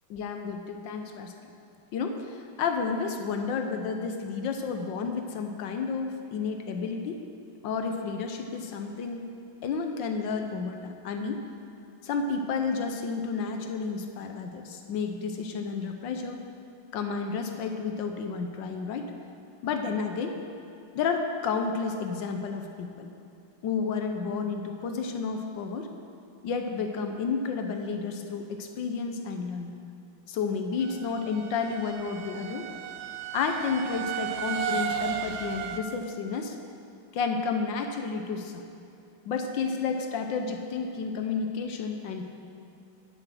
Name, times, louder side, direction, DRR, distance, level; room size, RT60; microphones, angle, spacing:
voice 1, 0.1-1.3 1.9-7.2 7.6-9.3 9.6-11.4 12.0-16.4 16.9-19.0 19.6-20.4 20.9-23.1 23.6-25.9 26.4-29.7 30.3-32.7 33.3-36.5 37.1-38.6 39.2-42.2, left 5 dB, 70° left, 5 dB, 1.3 m, -31 dB
sound 1, 30.8-35.8, right 9 dB, 75° right, 0.9 m, -34 dB
9.9 x 7.5 x 6.2 m, 2.6 s
omnidirectional pair, 2.3 m